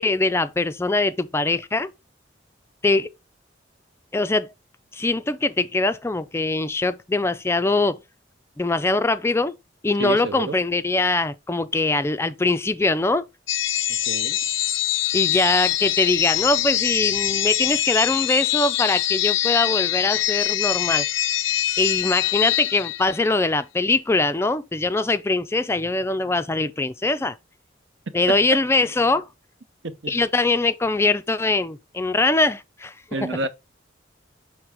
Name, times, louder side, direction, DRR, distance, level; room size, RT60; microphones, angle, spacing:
voice 1, 0.0-1.9 2.8-3.1 4.1-4.5 4.9-8.0 8.6-9.5 9.8-13.2 15.1-21.1 21.8-27.3 28.1-29.3 30.1-33.4, left 2 dB, 15° left, 0.3 m, -22 dB
voice 2, 10.0-10.6 14.1-14.4 29.8-30.1 33.1-33.5, right 2 dB, 75° right, 0.8 m, -29 dB
sound 1, 13.5-23.3, left 12 dB, 70° left, 0.5 m, -24 dB
6.1 x 3.3 x 4.8 m
head